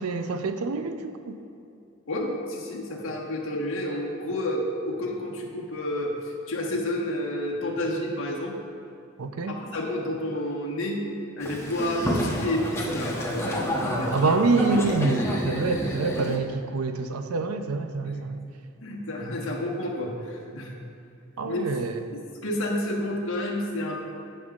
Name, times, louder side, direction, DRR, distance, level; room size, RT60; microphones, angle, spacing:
voice 1, 0.0-1.4 9.2-9.6 14.1-18.4 21.4-22.0, right 3 dB, 85° right, 8 dB, 0.5 m, -26 dB
voice 2, 2.1-6.1 6.5-8.5 9.5-11.0 11.4-14.3 18.1-18.2 18.8-20.8 21.5-21.6 22.1-24.0, left 1 dB, 65° left, -3 dB, 1.2 m, -30 dB
Boat Water vehicle, 11.4-16.4, equal, 15° left, 0.9 m, -29 dB
15.0 x 5.6 x 2.4 m, 2.6 s
head